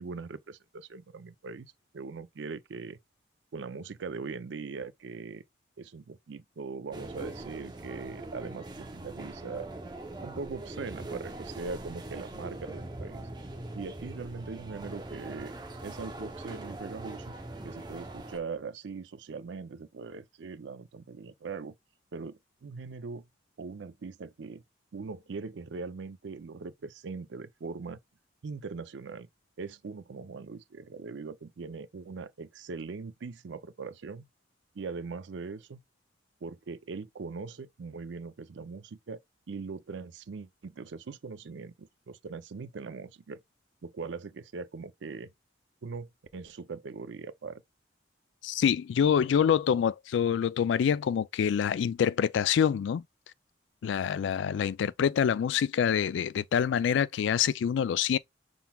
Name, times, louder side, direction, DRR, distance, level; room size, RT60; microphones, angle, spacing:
voice 1, 0.0-3.0 3.5-5.4 5.8-9.7 10.2-13.2 13.7-15.5 15.8-17.3 17.6-21.7 22.1-23.3 23.6-24.6 24.9-28.0 28.4-29.3 29.6-34.3 34.7-35.8 36.4-39.2 39.5-43.4 43.8-45.3 45.8-47.6, right 4 dB, 75° right, 0.5 m, -41 dB
sound 1, 6.9-18.4, right 2 dB, 25° right, 0.7 m, -42 dB
voice 2, 48.4-53.0 53.8-58.2, left 8 dB, 80° left, 0.3 m, -26 dB
5.7 x 3.7 x 2.3 m
head